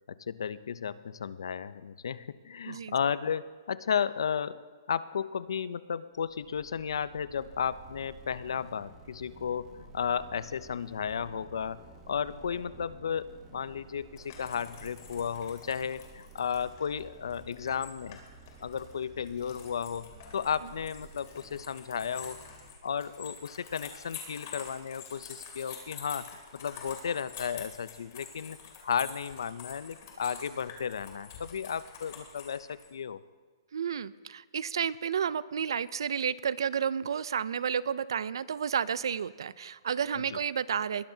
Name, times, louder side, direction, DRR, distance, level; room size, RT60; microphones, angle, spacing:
voice 1, 0.1-4.6 4.9-18.2 18.6-22.4 22.8-28.6 28.8-33.2 40.2-40.4, left 7 dB, 80° left, 17 dB, 0.5 m, -34 dB
sound 1, 6.2-22.7, right 4 dB, 15° right, 1.0 m, -53 dB
sound 2, 14.1-32.9, left 6 dB, 45° left, 2.7 m, -48 dB
voice 2, 33.7-41.1, right 7 dB, 75° right, 19 dB, 0.4 m, -31 dB
20.5 x 11.5 x 2.7 m, 1.5 s
hypercardioid pair, 170°, 2 cm